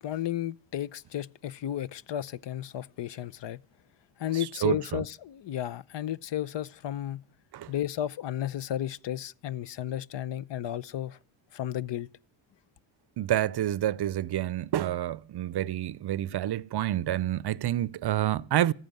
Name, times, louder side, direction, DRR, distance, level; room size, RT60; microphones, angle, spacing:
voice 1, 0.0-3.6 4.2-7.2 7.7-11.2 11.5-12.1, left 12 dB, 60° left, 0.7 m, -33 dB
voice 2, 4.3-5.0 7.5-7.7 13.2-18.7, right 12 dB, 50° right, 0.6 m, -28 dB
14.0 x 9.0 x 9.0 m
cardioid pair, 80°, 49 cm